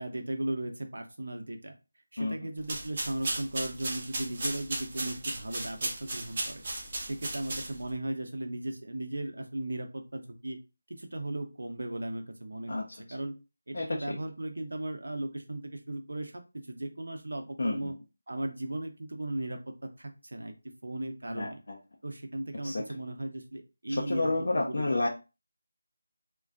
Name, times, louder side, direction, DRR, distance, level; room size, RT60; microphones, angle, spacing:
voice 1, 0.0-1.7 2.1-6.6 7.0-10.6 10.9-12.8 13.1-13.4 13.7-16.3 16.7-17.9 18.3-20.5 20.8-21.6 22.0-24.3 24.6-25.1, right 1 dB, 75° right, 6 dB, 0.6 m, -36 dB
sound 1, 2.6-8.0, right 2 dB, 35° right, 0.6 m, -36 dB
voice 2, 13.7-14.2 17.6-17.9 21.3-21.8 22.6-22.8 23.9-25.1, left 2 dB, 55° left, -1 dB, 0.4 m, -30 dB
2.4 x 2.2 x 2.4 m, 0.29 s
figure-of-eight pair, 170°, 0 cm